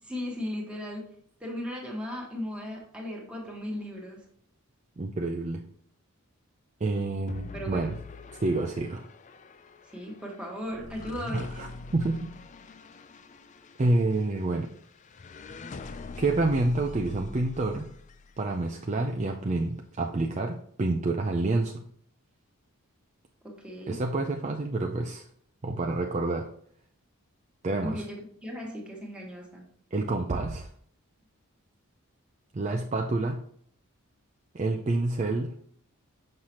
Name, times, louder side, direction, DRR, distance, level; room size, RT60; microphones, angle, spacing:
voice 1, 0.0-1.1 1.4-4.2 7.5-7.9 9.9-11.6 23.4-24.0 27.8-29.6, equal, 5° right, -2 dB, 1.4 m, -37 dB
voice 2, 5.0-5.6 6.8-8.0 8.4-9.1 11.3-12.3 13.8-14.7 16.2-17.9 18.4-21.8 23.9-25.3 25.6-26.5 27.6-28.0 29.9-30.7 32.5-33.4 34.5-35.5, right 2 dB, 30° right, 3 dB, 0.4 m, -28 dB
sound 1, 7.3-18.6, left 4 dB, 35° left, 0.3 m, -44 dB
6.5 x 5.6 x 2.9 m, 0.63 s
head